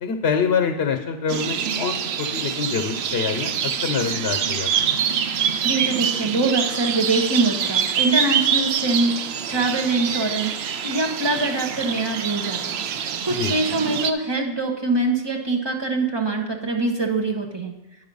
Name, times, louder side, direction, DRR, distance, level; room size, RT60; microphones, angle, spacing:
voice 1, 0.0-5.0 13.3-13.6, left 6 dB, 80° left, 6 dB, 1.0 m, -25 dB
sound 1, 1.3-14.1, right 8 dB, 80° right, 0.8 m, -25 dB
voice 2, 5.6-9.1 9.5-12.9 13.2-17.7, right 3 dB, 25° right, 1 dB, 1.1 m, -24 dB
9.7 x 5.6 x 5.4 m, 1.0 s
omnidirectional pair, 1.1 m